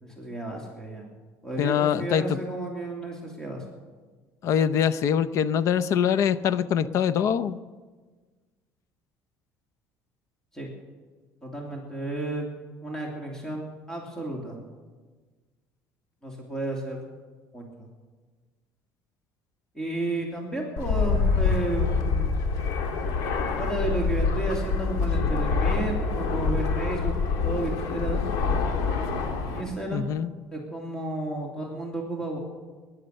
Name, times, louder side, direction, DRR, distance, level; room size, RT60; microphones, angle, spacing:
voice 1, 0.0-1.1 1.4-3.6 10.5-10.7 11.4-12.5 12.8-14.6 16.2-17.0 17.5-17.9 19.7-22.4 23.6-27.1 27.4-28.2 29.5-30.1 30.5-32.4, right 2 dB, 10° left, -1 dB, 2.9 m, -32 dB
voice 2, 1.6-2.4 4.4-7.6 29.9-30.3, left 8 dB, 55° left, 15 dB, 0.7 m, -24 dB
Fixed-wing aircraft airplane, 20.8-29.6, left 4 dB, 85° left, 2.3 m, -26 dB
20.0 x 11.0 x 6.5 m, 1.4 s
cardioid pair, 130°, 6 cm